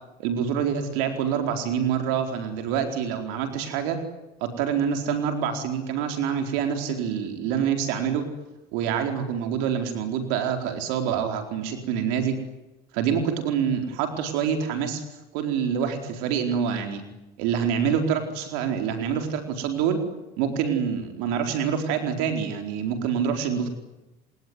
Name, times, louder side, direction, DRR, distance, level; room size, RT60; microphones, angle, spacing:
voice 1, 0.2-4.0 4.4-8.2 8.7-12.4 12.9-15.0 15.3-17.0 17.4-20.0 20.4-23.7, right 7 dB, 85° right, 6 dB, 4.5 m, -26 dB
29.5 x 19.5 x 9.7 m, 0.99 s
cardioid pair, 135°, 18 cm